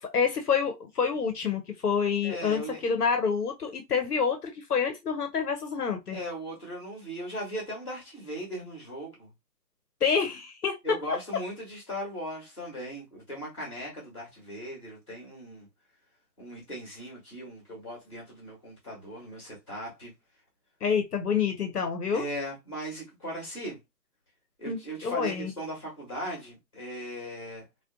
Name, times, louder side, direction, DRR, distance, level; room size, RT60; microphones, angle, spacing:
voice 1, 0.0-6.2 10.0-10.8 20.8-22.2 24.7-25.5, left 6 dB, 65° left, 0.6 m, -28 dB
voice 2, 2.2-2.8 6.1-9.3 10.8-15.7 16.4-20.1 22.1-23.8 24.6-27.6, equal, 20° left, 0.9 m, -38 dB
2.5 x 2.1 x 2.5 m
hypercardioid pair, 180°, 50 cm